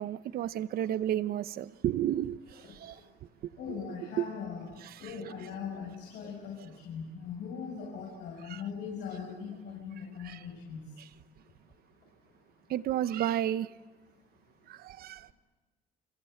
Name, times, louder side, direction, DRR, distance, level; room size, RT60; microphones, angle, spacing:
voice 1, 0.0-3.0 3.7-3.8 4.2-4.3 4.8-5.1 8.5-8.6 10.2-10.4 12.7-13.7 14.7-15.3, right 11 dB, 65° right, 1.0 m, -32 dB
voice 2, 2.6-3.0 3.6-4.7 5.0-10.9, left 6 dB, 75° left, 7.1 m, -40 dB
30.0 x 24.5 x 8.1 m
cardioid pair, 110°, 17 cm